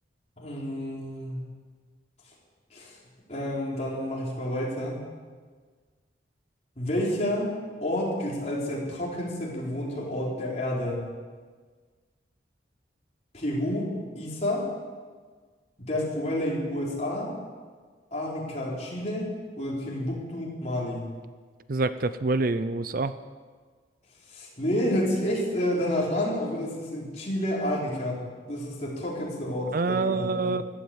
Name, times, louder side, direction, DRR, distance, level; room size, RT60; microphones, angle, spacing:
voice 1, 0.4-1.4 2.7-2.9 3.3-5.0 6.8-7.5 7.8-11.0 13.3-13.9 14.2-14.6 15.8-17.3 18.1-19.3 19.6-21.0 24.3-28.2 28.5-30.5, left 1 dB, 35° left, -4 dB, 4.4 m, -29 dB
voice 2, 21.7-23.1 29.7-30.6, right 3 dB, 50° right, 13 dB, 0.5 m, -26 dB
15.5 x 12.5 x 7.2 m, 1.5 s
head